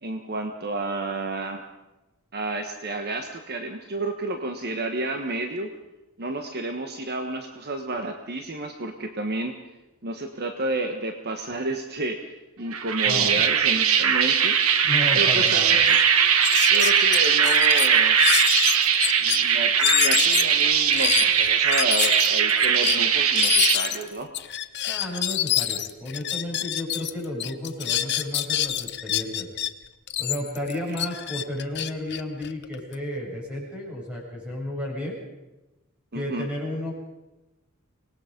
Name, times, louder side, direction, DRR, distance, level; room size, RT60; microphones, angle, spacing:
voice 1, 0.0-1.6 2.3-5.7 6.2-9.6 10.0-14.6 15.1-16.0 16.7-18.2 19.2-24.3 36.1-36.5, right 2 dB, 50° right, 5 dB, 1.4 m, -31 dB
sound 1, 12.7-23.8, right 7 dB, 75° right, 1.3 m, -20 dB
voice 2, 13.0-13.4 14.8-15.8 24.9-29.5 30.2-35.2 36.1-36.9, left 1 dB, 5° right, -4 dB, 7.7 m, -32 dB
sound 2, 15.5-15.6 15.9-16.0 16.4-19.4 19.8-27.1 27.4-29.7 30.1-33.0, left 12 dB, 55° left, 0.9 m, -26 dB
25.0 x 19.5 x 5.3 m, 1.0 s
head